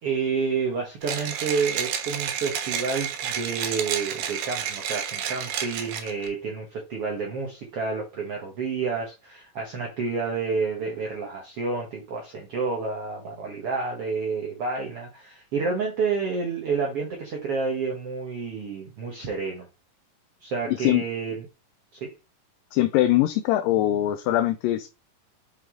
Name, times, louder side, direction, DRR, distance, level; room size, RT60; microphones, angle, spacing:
voice 1, 0.0-19.7 20.4-21.5 21.9-22.1, right 4 dB, 55° right, 1.8 m, -29 dB
Mechanisms, 1.0-6.3, right 8 dB, 90° right, 2.9 m, -30 dB
voice 2, 20.7-21.0 22.7-24.9, left 14 dB, 80° left, 2.2 m, -22 dB
6.1 x 5.2 x 3.8 m
omnidirectional pair, 4.0 m